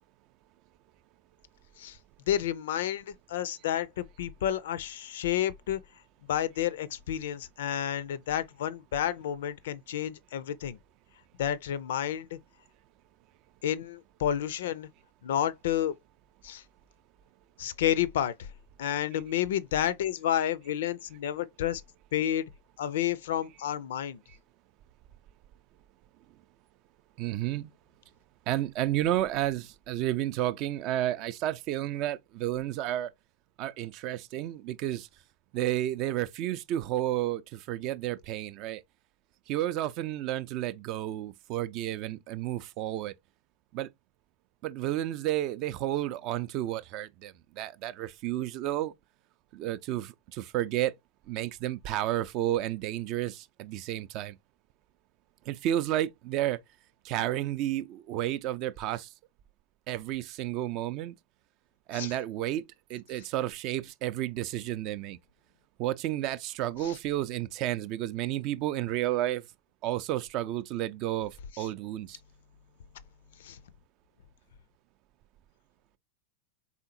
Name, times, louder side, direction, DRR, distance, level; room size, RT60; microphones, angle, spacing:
voice 1, 2.3-5.8 6.3-10.8 11.4-12.4 13.6-14.9 15.2-15.9 16.4-16.6 17.6-18.5 18.8-21.8 22.1-22.5 22.8-24.2 61.9-62.1 66.8-67.0 71.6-71.7 73.4-73.6, left 10 dB, 55° left, 0.4 m, -30 dB
voice 2, 27.2-27.7 28.5-33.1 33.6-35.1 35.5-38.8 39.5-43.1 43.7-43.9 44.6-48.9 49.5-50.9 51.3-54.3 55.5-56.6 57.0-59.1 59.9-61.1 61.9-62.6 62.9-65.2 65.8-69.4 69.8-72.2, right 13 dB, 40° right, 0.4 m, -31 dB
4.2 x 3.7 x 2.7 m
figure-of-eight pair, 90°, 0 cm